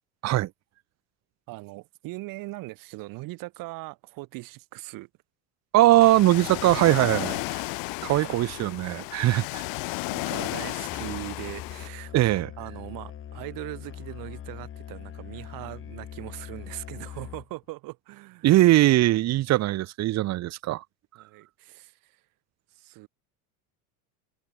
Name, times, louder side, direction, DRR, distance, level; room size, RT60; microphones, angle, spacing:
voice 1, 1.5-5.1 7.3-7.5 8.2-8.3 9.2-9.5 10.1-12.3 12.6-18.5 21.2-22.2 22.7-23.1, right 21 dB, 60° right, 2.0 m, -40 dB
voice 2, 5.7-7.3 8.0-9.4 12.1-12.5 18.4-20.8, right 16 dB, 45° right, 1.0 m, -20 dB
Ocean, 6.0-11.9, left 31 dB, 65° left, 0.9 m, -33 dB
Musical instrument, 10.8-17.6, left 10 dB, 35° left, 2.1 m, -42 dB
supercardioid pair, 125°, 38 cm